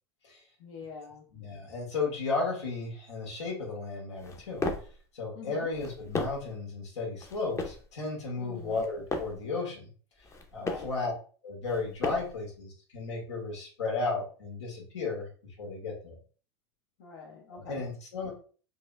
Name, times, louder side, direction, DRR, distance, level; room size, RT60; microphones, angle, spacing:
voice 1, 0.6-1.2 5.3-5.7 8.4-8.8 10.6-10.9 17.0-17.8, left 5 dB, 65° left, -2 dB, 0.9 m, -44 dB
voice 2, 1.3-4.7 5.1-9.9 10.5-11.1 11.4-15.3 15.6-16.1 17.5-18.3, left 3 dB, 90° left, -3 dB, 1.9 m, -34 dB
sound 1, 4.2-5.0 5.7-6.6 7.2-7.9 8.6-9.5 10.2-11.0 11.6-12.4, left 2 dB, 20° left, 0.6 m, -36 dB
4.6 x 2.7 x 2.3 m, 0.40 s
hypercardioid pair, 100°, 14 cm